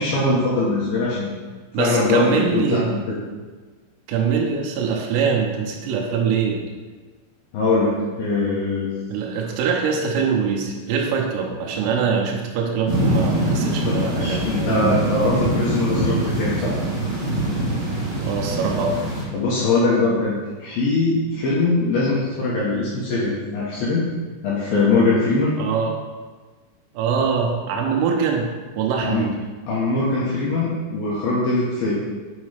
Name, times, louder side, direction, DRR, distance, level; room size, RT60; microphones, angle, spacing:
voice 1, 0.0-1.3 1.8-3.1 7.5-8.9 13.9-16.7 19.3-20.3 20.6-24.1 24.4-25.6 29.0-29.2 29.7-31.9, left 3 dB, 75° left, -7 dB, 2.1 m, -21 dB
voice 2, 1.7-2.9 4.1-6.6 9.1-14.7 18.3-19.0 25.6-26.0 26.9-29.4, right 6 dB, 85° right, 0 dB, 3.7 m, -23 dB
sound 1, 12.9-19.2, right 1 dB, 55° right, 2.5 m, -23 dB
8.4 x 4.2 x 5.0 m, 1.4 s
omnidirectional pair, 5.9 m